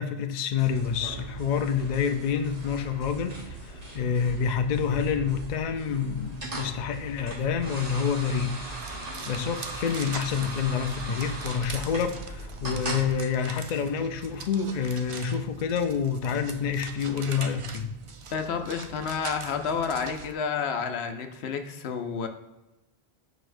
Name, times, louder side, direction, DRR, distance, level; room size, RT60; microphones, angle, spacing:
voice 1, 0.0-8.5 8.8-17.9, left 6 dB, 55° left, 0.5 m, -28 dB
sound 1, 0.6-13.1, right 1 dB, 40° right, 1.0 m, -38 dB
sound 2, 8.7-20.3, right 5 dB, 60° right, 0.3 m, -43 dB
voice 2, 18.3-22.3, left 6 dB, 85° left, 0.9 m, -30 dB
7.8 x 5.1 x 2.5 m
omnidirectional pair, 1.1 m